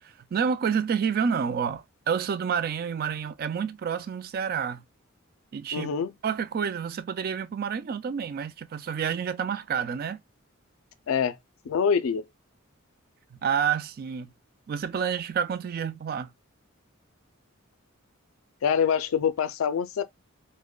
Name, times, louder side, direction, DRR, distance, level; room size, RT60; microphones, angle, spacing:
voice 1, 0.0-4.8 5.5-5.9 6.2-10.2 13.3-14.3 14.7-16.3, right 7 dB, 45° right, 0.3 m, -29 dB
voice 2, 5.7-6.1 11.1-11.4 11.7-12.2 18.6-20.0, left 7 dB, 75° left, 0.4 m, -25 dB
4.8 x 2.1 x 2.2 m
head